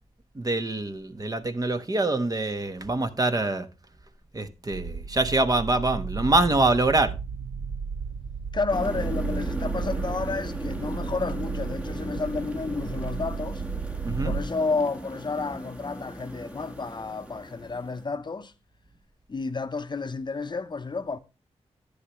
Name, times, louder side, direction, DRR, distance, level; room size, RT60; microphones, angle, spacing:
voice 1, 0.3-3.7 4.3-7.1 14.0-14.3, right 2 dB, 30° right, 1.2 m, -25 dB
sound 1, 4.7-14.4, right 5 dB, 70° right, 0.7 m, -33 dB
voice 2, 8.5-13.6 14.2-18.5 19.3-21.2, left 4 dB, 40° left, 0.8 m, -31 dB
sound 2, 8.7-18.0, right 1 dB, 10° right, 1.4 m, -37 dB
11.0 x 9.8 x 3.1 m
wide cardioid pair, 85°, 12 cm